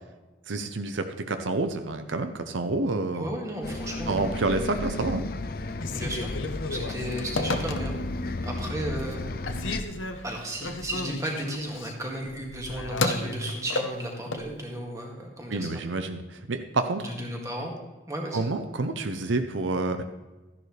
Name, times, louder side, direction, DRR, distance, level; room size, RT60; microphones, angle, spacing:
voice 1, 0.5-3.3 4.1-5.2 15.5-16.2 16.5-17.1 18.3-20.0, right 3 dB, 75° right, 8 dB, 0.7 m, -28 dB
voice 2, 3.1-4.2 5.9-6.4 6.7-7.9 8.4-9.2 10.2-15.8 17.0-17.7 18.1-18.5, right 1 dB, 15° right, 0 dB, 1.9 m, -34 dB
Bus, 3.6-9.8, left 2 dB, 50° left, 0.6 m, -33 dB
Telephone, 5.7-8.2 8.7-9.2 9.5-14.5, left 2 dB, 90° left, 1.0 m, -32 dB
12.5 x 10.5 x 3.3 m, 1.2 s
head